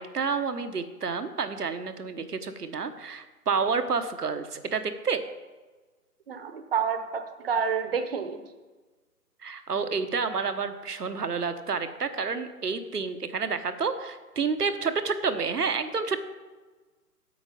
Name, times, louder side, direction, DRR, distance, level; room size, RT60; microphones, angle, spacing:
voice 1, 0.0-5.2 9.4-16.2, right 5 dB, 70° right, 9 dB, 1.1 m, -29 dB
voice 2, 6.3-8.4, right 6 dB, 35° right, 8 dB, 1.0 m, -29 dB
9.0 x 8.0 x 5.2 m, 1.3 s
figure-of-eight pair, 135°, 48 cm